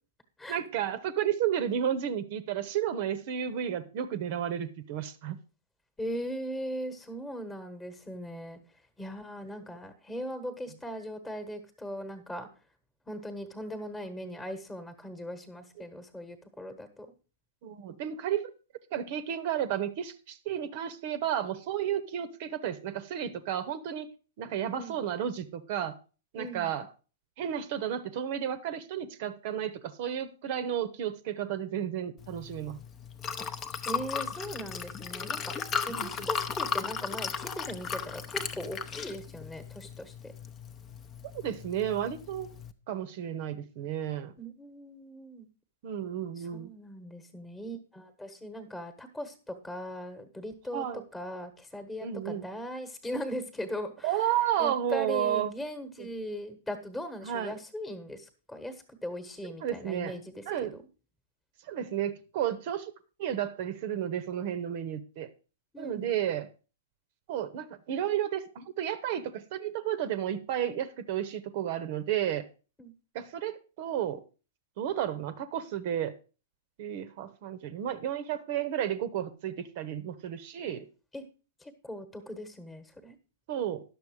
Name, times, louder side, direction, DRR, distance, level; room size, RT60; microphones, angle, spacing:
voice 1, 0.5-5.4 17.6-18.4 18.9-24.1 24.4-25.9 26.3-26.9 27.4-32.8 35.9-36.3 41.3-42.5 42.9-44.3 45.8-46.7 50.7-51.0 52.0-52.5 54.0-55.5 56.0-56.1 57.2-57.6 59.4-60.1 60.5-60.7 61.6-62.9 63.2-65.3 65.8-66.5 67.3-72.4 73.1-74.2 74.8-76.1 76.8-80.9 83.5-83.8, right 10 dB, 45° right, 12 dB, 0.8 m, -32 dB
voice 2, 6.0-8.6 9.0-12.5 13.1-17.1 24.7-25.0 26.4-26.7 33.4-33.5 33.8-35.5 35.8-40.3 44.4-45.5 46.4-50.8 51.1-54.1 54.6-60.4 60.7-60.8 65.7-66.1 72.8-72.9 81.1-81.2 81.6-83.2, equal, 10° left, 9 dB, 1.3 m, -39 dB
Liquid, 32.2-42.7, left 6 dB, 25° left, 0.7 m, -36 dB
10.5 x 6.8 x 4.7 m, 0.34 s
figure-of-eight pair, 105°, 0 cm